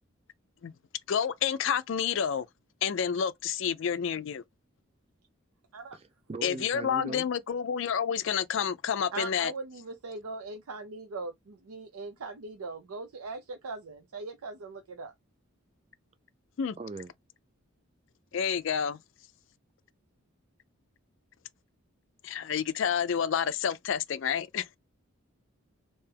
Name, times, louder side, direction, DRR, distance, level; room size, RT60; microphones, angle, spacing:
voice 1, 1.1-2.5 2.8-4.4 6.4-9.5 16.6-16.8 18.3-19.0 22.2-24.8, left 7 dB, 55° left, 0.4 m, -29 dB
voice 2, 6.3-7.3 16.8-17.1, right 3 dB, 25° right, 0.3 m, -39 dB
voice 3, 9.1-15.1, right 3 dB, 85° right, 0.6 m, -40 dB
3.3 x 2.7 x 3.3 m
head